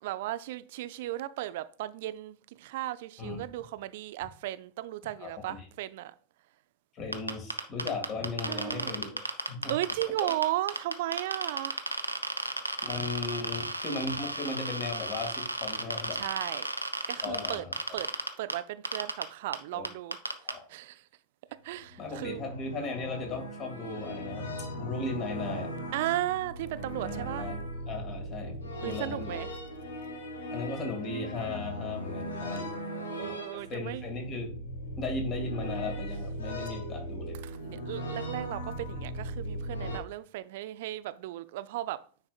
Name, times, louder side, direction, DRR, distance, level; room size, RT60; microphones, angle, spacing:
voice 1, 0.0-6.1 8.5-9.1 9.7-11.8 16.1-16.7 17.1-17.6 17.9-18.1 18.4-20.2 20.7-21.0 21.6-22.4 25.9-27.5 28.8-29.5 32.1-32.4 32.7-34.0 37.4-42.0, right 15 dB, 50° right, 0.4 m, -35 dB
voice 2, 5.2-5.7 6.9-9.7 10.2-10.3 12.8-16.2 17.2-17.7 19.7-19.8 20.4-20.6 22.0-24.5 24.8-25.7 27.1-27.6 27.9-29.4 30.5-32.7 33.2-34.5 35.0-37.4, left 3 dB, 30° left, 2.2 m, -37 dB
sound 1, 7.1-10.4 10.7-18.5 18.8-19.2 19.5-19.6 19.8-20.5, right 1 dB, 90° right, 0.6 m, -32 dB
sound 2, 21.7-40.0, equal, 70° left, 1.1 m, -38 dB
9.7 x 4.7 x 2.4 m
figure-of-eight pair, 90°, 0 cm